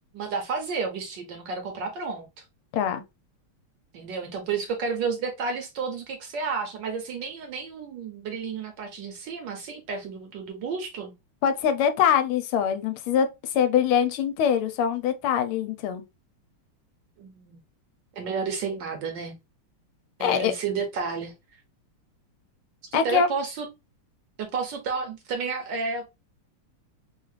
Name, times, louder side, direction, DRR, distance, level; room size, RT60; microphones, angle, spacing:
voice 1, 0.1-2.3 3.9-11.1 17.2-17.6 18.2-19.4 20.2-21.3 22.9-23.7 24.4-26.1, right 5 dB, 70° right, 1.2 m, -31 dB
voice 2, 11.4-16.0 20.2-20.5 22.9-23.3, left 8 dB, 80° left, 1.4 m, -23 dB
3.6 x 2.4 x 3.1 m
omnidirectional pair, 2.4 m